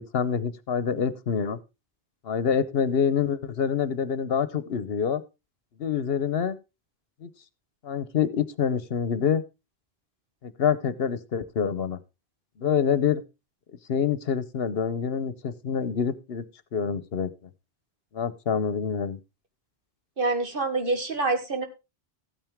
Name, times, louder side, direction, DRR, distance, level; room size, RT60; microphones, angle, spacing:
voice 1, 0.0-1.6 2.2-5.2 5.8-6.6 7.2-7.3 7.8-9.4 10.4-12.0 12.6-13.2 13.9-16.4 16.7-17.3 18.1-19.2, left 7 dB, 70° left, 15 dB, 1.1 m, -26 dB
voice 2, 20.2-21.7, right 3 dB, 60° right, 7 dB, 1.8 m, -26 dB
14.5 x 9.0 x 3.5 m, 0.26 s
omnidirectional pair, 1.1 m